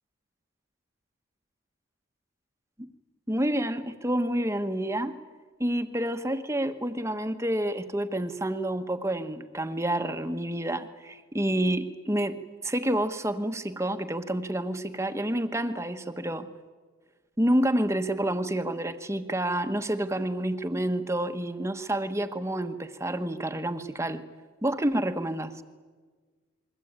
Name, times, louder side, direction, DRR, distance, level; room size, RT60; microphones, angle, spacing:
voice 1, 3.3-5.1 5.6-16.5 17.4-24.2 24.6-25.5, right 1 dB, 15° right, 8 dB, 1.2 m, -28 dB
29.0 x 22.5 x 8.9 m, 1.5 s
head